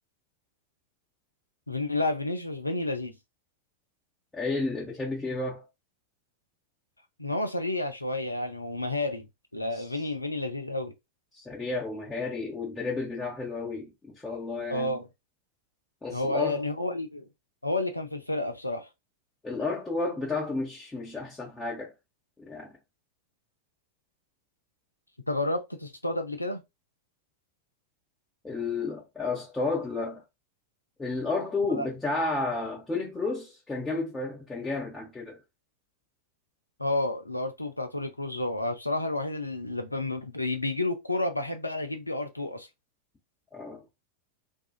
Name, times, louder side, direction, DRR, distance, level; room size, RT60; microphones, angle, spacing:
voice 1, 1.7-3.1 7.2-9.3 9.5-10.9 14.7-15.1 16.1-17.3 17.6-18.9 25.3-26.6 31.8-31.9 36.8-42.7, left 2 dB, 85° left, 0.5 m, -30 dB
voice 2, 4.3-5.7 9.7-9.8 11.3-15.0 16.0-16.6 19.4-21.9 22.4-22.7 28.4-30.2 31.0-35.4 43.5-43.8, left 3 dB, 10° left, 0.8 m, -32 dB
2.6 x 2.3 x 2.4 m
figure-of-eight pair, 90°, 0 cm